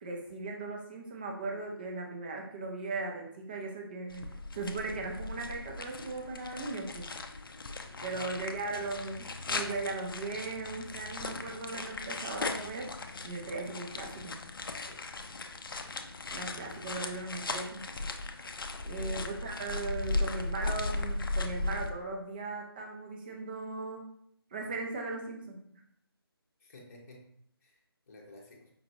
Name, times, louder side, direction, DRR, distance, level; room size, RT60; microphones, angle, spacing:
voice 1, 0.0-4.3 4.5-7.1 8.0-12.9 13.2-14.4 16.3-18.0 18.8-24.1 24.5-25.8, right 3 dB, 20° right, 1 dB, 0.6 m, -38 dB
sound 1, 4.1-21.9, left 3 dB, 60° left, 0.5 m, -37 dB
voice 2, 7.8-8.8 14.8-15.0 18.8-19.5 19.9-20.2 26.6-27.2 27.6-28.7, left 2 dB, 35° left, -1 dB, 0.8 m, -54 dB
5.2 x 2.5 x 2.9 m, 0.66 s
figure-of-eight pair, 155°, 13 cm